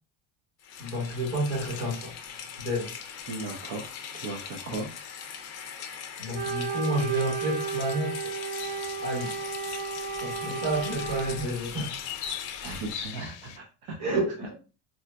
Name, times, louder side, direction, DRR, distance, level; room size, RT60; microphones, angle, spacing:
Rain, 0.6-13.2, left 7 dB, 40° left, 0.4 m, -41 dB
voice 1, 0.8-2.1 2.6-2.9 6.2-8.3 9.0-9.3 10.2-11.9 14.0-14.5, right 1 dB, 75° right, -6 dB, 1.6 m, -30 dB
voice 2, 3.3-4.9 12.6-14.2, right 3 dB, 55° right, 0 dB, 0.7 m, -37 dB
Wind instrument woodwind instrument, 6.3-11.5, right 5 dB, 20° right, 0.4 m, -34 dB
sound 1, 8.6-13.6, left 9 dB, 90° left, 0.6 m, -41 dB
3.9 x 2.3 x 2.2 m, 0.32 s
cardioid pair, 150°, 44 cm